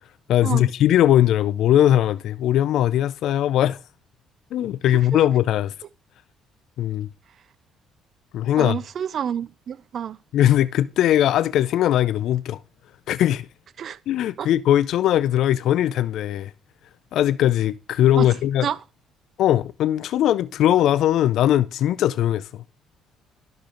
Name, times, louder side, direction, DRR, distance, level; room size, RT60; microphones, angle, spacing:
voice 1, 0.3-3.8 4.5-5.7 6.8-7.1 8.3-8.8 10.3-12.6 13.1-13.5 14.1-16.5 17.1-18.7 19.4-22.6, left 12 dB, 70° left, 0.4 m, -20 dB
voice 2, 8.6-10.2 13.8-14.0 14.4-14.5 18.2-18.3 18.6-18.8, right 8 dB, 55° right, 0.4 m, -28 dB
12.0 x 6.6 x 3.8 m
cardioid pair, 100°, 0 cm